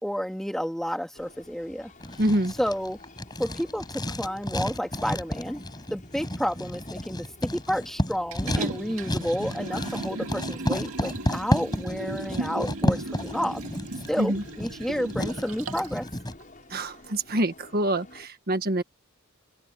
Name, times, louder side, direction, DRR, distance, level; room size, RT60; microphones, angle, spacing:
voice 1, 0.0-1.9 2.6-3.0 3.4-5.6 5.9-7.3 7.5-13.6 14.1-16.1, equal, ahead, 1.9 m, -30 dB
sound 1, 1.1-18.3, left 2 dB, 40° left, 6.7 m, -51 dB
Writing, 2.0-16.4, equal, 20° left, 6.5 m, -31 dB
voice 2, 2.2-2.5 14.2-14.4 16.7-18.8, right 1 dB, 45° right, 1.5 m, -26 dB
Liquid, 8.3-16.0 16.4-16.5, right 2 dB, 80° right, 2.0 m, -36 dB
open air
head